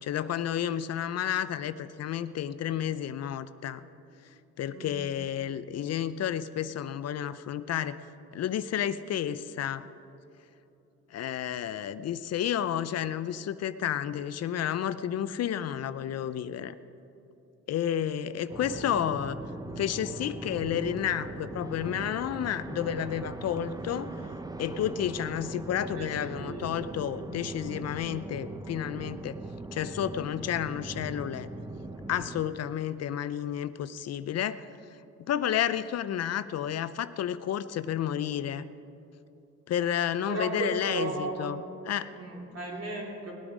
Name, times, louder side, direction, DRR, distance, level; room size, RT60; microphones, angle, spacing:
voice 1, 0.0-3.9 4.6-8.0 8.3-9.9 11.1-16.8 17.7-19.4 19.8-24.2 24.6-29.4 29.7-31.5 32.1-34.7 35.2-38.7 39.7-42.1, left 10 dB, 55° left, 14 dB, 0.5 m, -31 dB
sound 1, 18.5-32.5, right 2 dB, 15° right, 0.7 m, -40 dB
voice 2, 25.9-26.8 40.3-41.4 42.1-43.3, right 2 dB, 55° right, -3 dB, 3.7 m, -35 dB
19.0 x 8.7 x 5.0 m, 2.8 s
cardioid pair, 90°, 30 cm